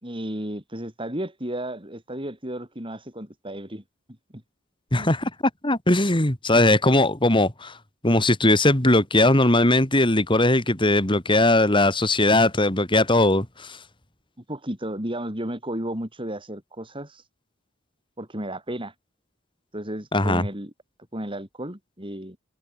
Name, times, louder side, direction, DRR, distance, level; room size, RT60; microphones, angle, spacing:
voice 1, 0.0-3.8 4.3-4.4 5.0-5.1 14.5-17.3 18.2-18.9 19.7-20.7 21.1-22.4, right 1 dB, 25° right, 6.0 m, -33 dB
voice 2, 4.9-5.3 5.6-7.8 8.0-13.8 20.1-20.4, left 2 dB, 25° left, 2.9 m, -19 dB
head